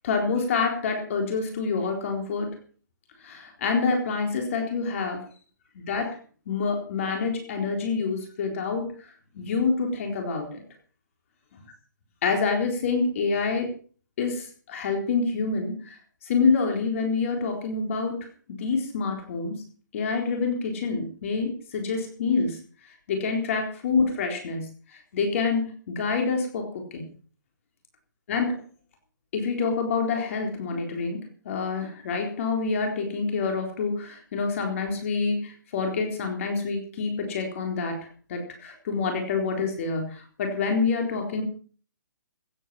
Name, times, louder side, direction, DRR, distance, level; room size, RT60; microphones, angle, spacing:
voice 1, 0.0-2.5 3.2-5.2 5.7-6.2 6.5-8.9 9.3-10.6 12.2-13.7 14.2-18.3 18.6-19.6 19.9-22.6 23.1-27.0 28.3-28.6 29.3-38.0 38.3-41.4, left 4 dB, 45° left, 3 dB, 4.0 m, -27 dB
17.0 x 9.8 x 5.8 m, 0.43 s
hypercardioid pair, 160°, 10 cm